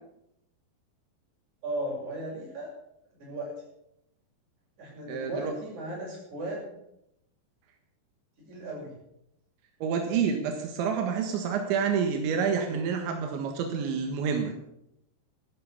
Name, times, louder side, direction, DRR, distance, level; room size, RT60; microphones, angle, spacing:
voice 1, 1.6-2.7 3.2-3.5 4.8-6.7 8.4-9.0, right 1 dB, 40° right, -3 dB, 7.8 m, -36 dB
voice 2, 5.1-5.5 9.8-14.5, right 6 dB, 85° right, 4 dB, 3.9 m, -28 dB
15.5 x 12.5 x 7.1 m, 0.80 s
omnidirectional pair, 5.1 m